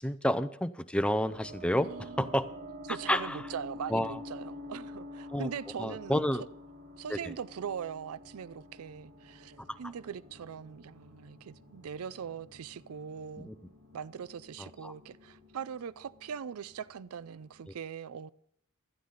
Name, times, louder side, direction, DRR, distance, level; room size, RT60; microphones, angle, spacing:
voice 1, 0.0-2.5 3.1-3.4 3.9-4.2 5.3-5.5 5.8-6.4 7.1-7.2 9.7-9.8 13.4-13.6 14.6-14.9, equal, 5° left, 0.5 m, -30 dB
sound 1, 1.2-17.7, left 1 dB, 55° right, 4.1 m, -49 dB
voice 2, 1.8-2.4 2.9-6.2 7.0-13.5 13.9-18.3, right 7 dB, 75° right, 0.4 m, -41 dB
16.0 x 13.0 x 4.0 m
head